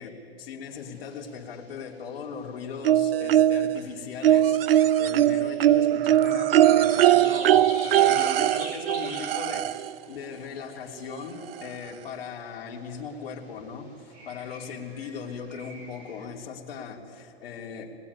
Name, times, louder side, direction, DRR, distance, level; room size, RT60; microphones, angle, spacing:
voice 1, 0.0-18.0, left 6 dB, 55° left, 1 dB, 3.1 m, -38 dB
sound 1, 0.7-16.3, right 1 dB, 25° right, 4.3 m, -46 dB
sound 2, 2.8-3.8 4.2-9.9 11.1-11.2 11.6-11.7, right 12 dB, 60° right, 0.6 m, -21 dB
23.0 x 20.5 x 9.6 m, 2.7 s
hypercardioid pair, 160°, 34 cm